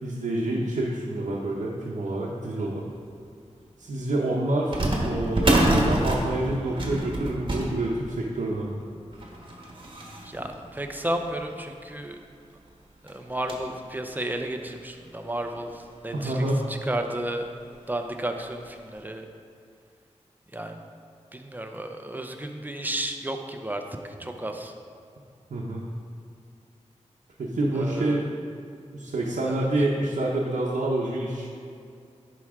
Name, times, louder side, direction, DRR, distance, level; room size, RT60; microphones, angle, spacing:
voice 1, 0.0-2.9 3.8-8.7 16.1-16.6 25.5-25.8 27.4-28.3 28.9-31.5, right 1 dB, 90° right, -4 dB, 0.8 m, -27 dB
sound 1, 3.3-3.4 4.7-11.7 12.2-12.3 12.6-12.7 13.1-13.8 14.3-14.4 15.3-15.4 15.7-15.9 17.2-17.5 17.9-18.0 18.6-18.8, right 1 dB, 45° right, 1.3 m, -28 dB
voice 2, 10.2-12.2 13.0-17.5 17.9-19.3 20.5-20.8 21.3-24.7 27.7-28.3 29.4-29.7, right 1 dB, 15° right, 4 dB, 0.6 m, -33 dB
11.0 x 4.7 x 3.6 m, 2.4 s
wide cardioid pair, 70°, 12 cm